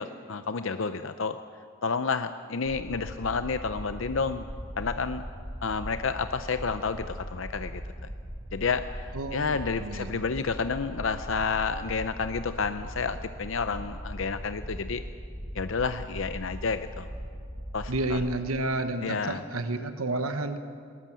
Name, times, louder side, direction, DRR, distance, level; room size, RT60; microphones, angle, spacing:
voice 1, 0.0-1.4 1.8-4.4 4.8-5.2 5.6-7.8 8.5-15.0 15.5-17.1 17.7-18.2 19.0-19.4, left 5 dB, 65° left, 10 dB, 0.6 m, -30 dB
sound 1, 2.6-18.4, equal, 10° right, 3.0 m, -40 dB
voice 2, 9.1-10.1 17.9-20.6, right 2 dB, 90° right, 9 dB, 1.3 m, -30 dB
20.5 x 19.5 x 7.6 m, 2.2 s
head